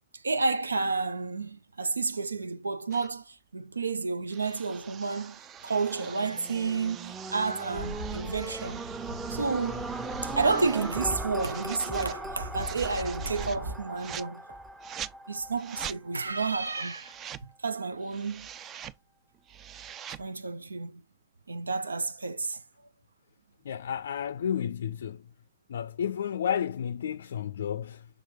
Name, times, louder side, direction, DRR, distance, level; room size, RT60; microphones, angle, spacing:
voice 1, 0.2-8.8 9.3-9.9 10.2-14.4 15.3-17.1 17.6-18.5 20.2-21.0 21.5-22.6, right 4 dB, 75° right, 0.5 m, -30 dB
sound 1, 2.9-3.1 4.3-11.0 11.4-12.2 12.6-13.6 14.0-14.3 14.8-15.2 15.6-16.0 16.5-17.5 17.9-19.0 19.3-20.3, right 9 dB, 30° right, 0.5 m, -44 dB
sound 2, 5.9-16.2 16.8-16.9, right 2 dB, 15° right, 0.9 m, -39 dB
sound 3, 7.7-13.7, right 1 dB, 60° right, 1.5 m, -41 dB
voice 2, 23.6-25.3 25.7-28.1, left 8 dB, 65° left, 0.4 m, -31 dB
6.8 x 5.9 x 3.1 m
figure-of-eight pair, 90°, 0 cm